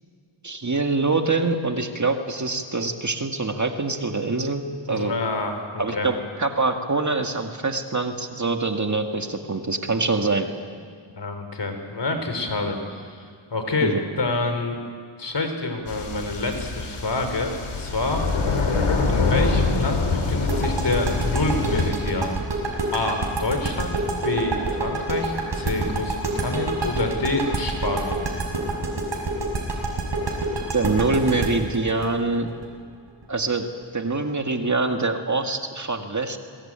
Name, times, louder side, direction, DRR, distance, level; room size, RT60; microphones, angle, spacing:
voice 1, 0.4-5.1 5.8-10.5 13.8-14.0 30.7-32.5 33.3-36.4, right 3 dB, 35° right, 5 dB, 2.1 m, -24 dB
voice 2, 4.9-6.1 11.2-13.2 13.5-14.8 15.2-18.3 19.1-22.4 22.9-23.9 24.2-28.2, left 2 dB, 55° left, 6 dB, 4.2 m, -27 dB
sound 1, 15.9-21.9, left 4 dB, 75° left, 3.9 m, -25 dB
sound 2, 20.5-33.2, right 3 dB, 60° right, 6.2 m, -27 dB
22.5 x 22.0 x 9.0 m, 2.1 s
cardioid pair, 60°, 50 cm